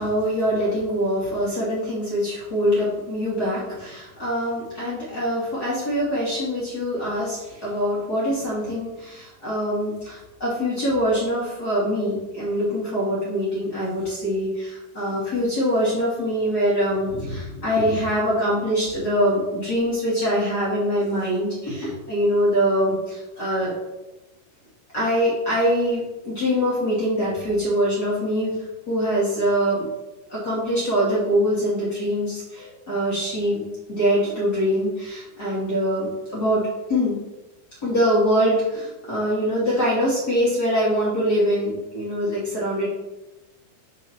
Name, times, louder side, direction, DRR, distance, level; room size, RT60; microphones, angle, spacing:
voice 1, 0.0-23.7 24.9-28.6 28.9-29.9 30.3-33.6 33.9-36.6 36.9-37.1 37.8-42.9, equal, 30° left, -8 dB, 1.8 m, -23 dB
6.2 x 5.2 x 5.8 m, 1.0 s
omnidirectional pair, 5.1 m